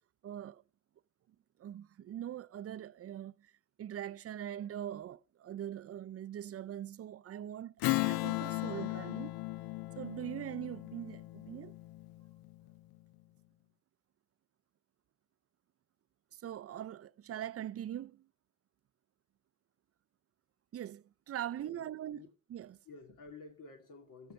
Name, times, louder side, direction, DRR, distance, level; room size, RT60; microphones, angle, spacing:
voice 1, 0.2-0.6 1.6-3.5 3.8-9.4 10.0-11.8 16.3-18.3 20.7-22.8, right 11 dB, 40° right, 0.5 m, -42 dB
Strum, 7.8-12.7, left 19 dB, 80° left, 0.5 m, -36 dB
voice 2, 21.5-22.3 22.8-24.3, left 4 dB, 60° left, 2.3 m, -53 dB
14.0 x 5.5 x 6.6 m
supercardioid pair, 70°, 35 cm